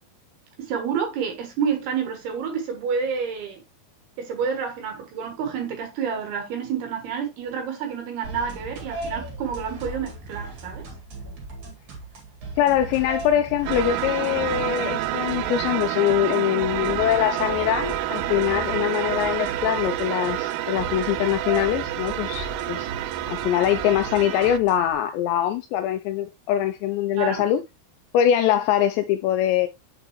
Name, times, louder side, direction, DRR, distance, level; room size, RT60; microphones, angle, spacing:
voice 1, 0.6-3.6 4.2-10.8 18.7-18.8 27.1-27.5, right 6 dB, 70° right, 2.8 m, -29 dB
sound 1, 8.2-24.9, right 2 dB, 45° right, 3.1 m, -38 dB
voice 2, 12.6-22.9 23.3-27.6 28.1-29.7, left 11 dB, 85° left, 2.6 m, -23 dB
sound 2, 13.7-24.6, right 14 dB, 90° right, 3.1 m, -28 dB
7.0 x 5.7 x 3.0 m
omnidirectional pair, 5.5 m